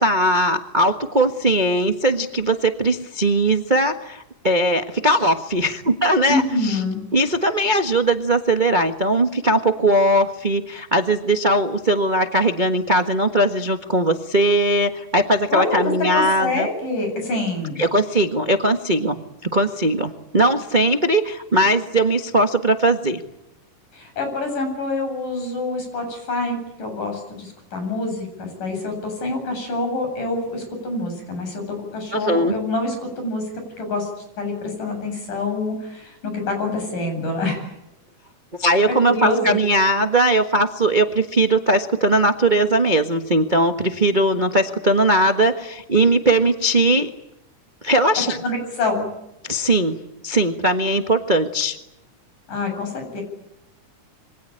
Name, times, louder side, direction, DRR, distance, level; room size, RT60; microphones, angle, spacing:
voice 1, 0.0-6.8 7.1-16.7 17.8-23.2 32.1-32.5 38.6-47.1 47.8-48.4 49.4-50.0 50.2-51.8, right 1 dB, 65° right, 5 dB, 0.4 m, -19 dB
voice 2, 6.3-7.0 15.5-15.8 16.1-17.8 23.9-34.1 34.4-37.7 38.9-39.6 48.4-49.1 52.5-53.2, left 2 dB, 80° left, 4 dB, 9.6 m, -26 dB
27.5 x 24.5 x 8.9 m, 0.88 s
omnidirectional pair, 3.7 m